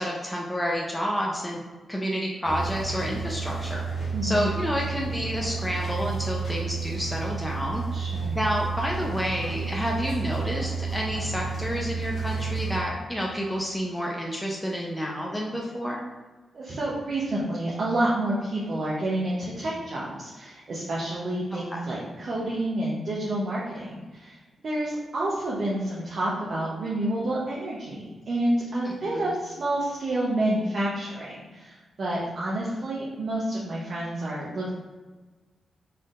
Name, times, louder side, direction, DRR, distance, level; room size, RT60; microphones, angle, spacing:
voice 1, 0.0-1.6 1.9-3.8 4.2-7.8 8.3-16.0 21.5-21.8 28.8-29.4, equal, 5° left, -2 dB, 0.6 m, -29 dB
sound 1, 2.4-12.8, right 5 dB, 70° left, 1.3 m, -31 dB
voice 2, 4.1-4.5 7.9-8.4 16.5-24.4 24.6-34.7, right 1 dB, 55° right, -6 dB, 0.8 m, -29 dB
4.1 x 3.7 x 2.5 m, 1.3 s
cardioid pair, 70°, 0 cm